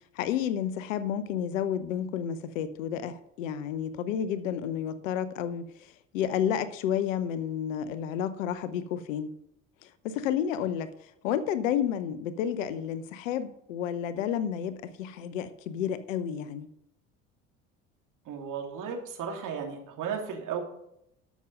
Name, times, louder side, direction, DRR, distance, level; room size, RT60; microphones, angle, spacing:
voice 1, 0.1-5.6 6.1-9.3 10.0-10.9 11.2-16.7, left 9 dB, 75° left, 13 dB, 0.9 m, -31 dB
voice 2, 18.2-20.6, right 7 dB, 50° right, 2 dB, 2.7 m, -35 dB
13.0 x 6.2 x 5.3 m, 0.77 s
hypercardioid pair, 65°, 39 cm